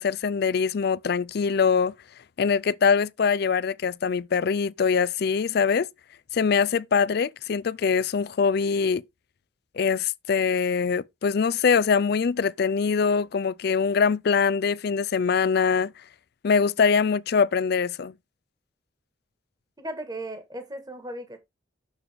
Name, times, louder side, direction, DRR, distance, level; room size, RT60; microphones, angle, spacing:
voice 1, 0.0-1.9 2.4-5.9 6.3-9.0 9.7-15.9 16.4-18.1, left 5 dB, 60° left, 0.4 m, -23 dB
voice 2, 19.8-21.4, right 1 dB, 20° right, 1.6 m, -36 dB
7.0 x 6.8 x 3.6 m
head